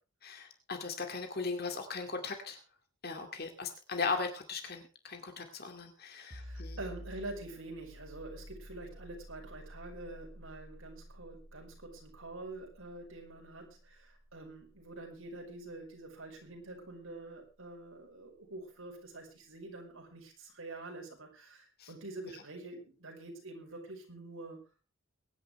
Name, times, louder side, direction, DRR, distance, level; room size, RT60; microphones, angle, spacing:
voice 1, 0.2-2.6 3.0-6.8 21.8-21.9, left 4 dB, 45° left, 5 dB, 2.3 m, -38 dB
voice 2, 6.1-24.6, right 2 dB, 75° right, 1 dB, 5.6 m, -46 dB
sound 1, 6.3-17.7, equal, 30° right, 2.6 m, -52 dB
23.0 x 10.5 x 3.3 m, 0.31 s
head